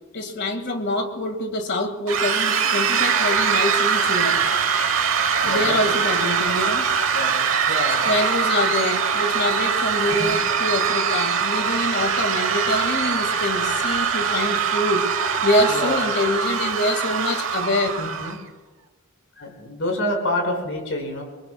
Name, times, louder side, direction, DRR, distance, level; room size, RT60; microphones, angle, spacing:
voice 1, 0.1-4.4 5.4-6.8 8.0-15.1 15.4-17.9, left 1 dB, 55° left, 6 dB, 1.8 m, -25 dB
sound 1, 2.1-18.4, right 6 dB, 70° right, 1.1 m, -22 dB
voice 2, 5.4-5.9 6.5-6.6 7.1-7.4 7.7-8.1 10.2-10.4 15.7-16.0 18.0-18.4 19.3-21.2, left 1 dB, 75° left, 1 dB, 4.7 m, -28 dB
27.5 x 22.0 x 2.2 m, 1.2 s
head